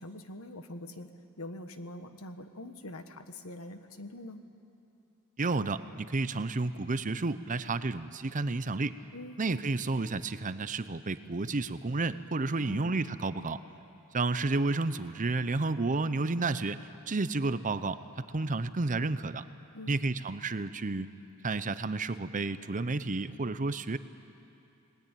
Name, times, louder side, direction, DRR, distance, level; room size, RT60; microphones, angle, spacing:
voice 1, 0.0-4.5 9.1-9.4 12.6-13.1 19.7-20.0, left 1 dB, 70° left, 8 dB, 1.5 m, -44 dB
voice 2, 5.4-9.0 9.4-13.6 14.1-19.4 19.9-21.1 21.4-24.0, right 3 dB, 35° right, 13 dB, 0.7 m, -31 dB
30.0 x 20.0 x 9.1 m, 2.8 s
head